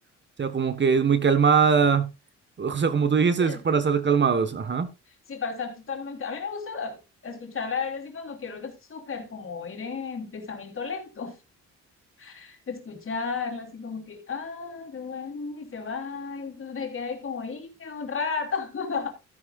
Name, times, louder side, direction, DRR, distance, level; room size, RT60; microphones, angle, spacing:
voice 1, 0.4-2.1 2.6-4.9, right 6 dB, 35° right, 1.4 m, -21 dB
voice 2, 5.3-11.4 12.2-19.1, left 5 dB, 45° left, 3.5 m, -34 dB
14.0 x 10.0 x 2.4 m
cardioid pair, 90°, 30 cm